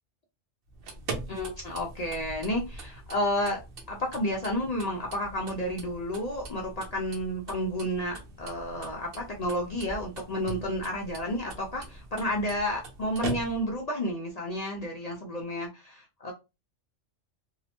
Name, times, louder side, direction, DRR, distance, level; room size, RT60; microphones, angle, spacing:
sound 1, 0.7-13.9, right 3 dB, 55° right, 0.7 m, -42 dB
voice 1, 1.3-3.6 3.9-16.3, equal, 65° left, -1 dB, 0.4 m, -31 dB
2.8 x 2.0 x 2.8 m, 0.26 s
omnidirectional pair, 1.3 m